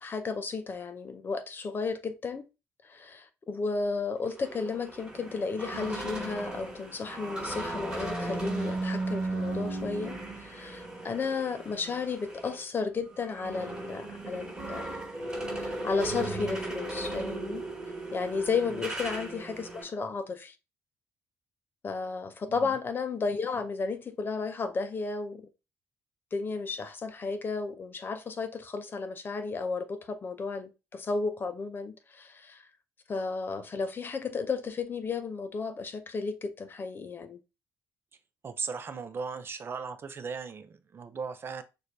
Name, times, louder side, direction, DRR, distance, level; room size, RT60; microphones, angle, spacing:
voice 1, 0.0-2.5 2.9-14.9 15.5-17.7 18.1-20.5 21.8-25.5 26.3-32.6 33.1-37.4, left 4 dB, 35° left, 0.6 m, -33 dB
sound 1, 4.2-12.6 13.0-19.8, right 2 dB, 10° right, 2.1 m, -36 dB
voice 2, 38.4-41.6, right 5 dB, 40° right, 0.5 m, -37 dB
6.4 x 2.5 x 2.7 m
cardioid pair, 110°, 6 cm